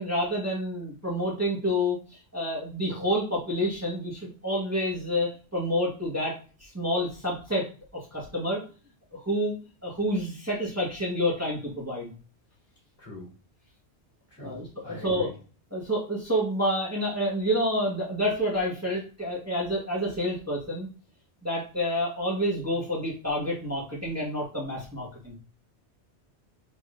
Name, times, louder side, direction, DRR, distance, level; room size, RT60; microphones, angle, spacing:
voice 1, 0.0-2.0 2.3-6.3 6.6-7.7 8.1-8.6 9.1-9.5 9.8-12.1 14.4-15.3 15.7-20.9 21.4-25.3, equal, 15° right, -5 dB, 1.4 m, -28 dB
voice 2, 13.0-13.3 14.3-15.3, left 3 dB, 55° left, -5 dB, 3.0 m, -43 dB
4.9 x 3.8 x 2.5 m, 0.36 s
omnidirectional pair, 1.2 m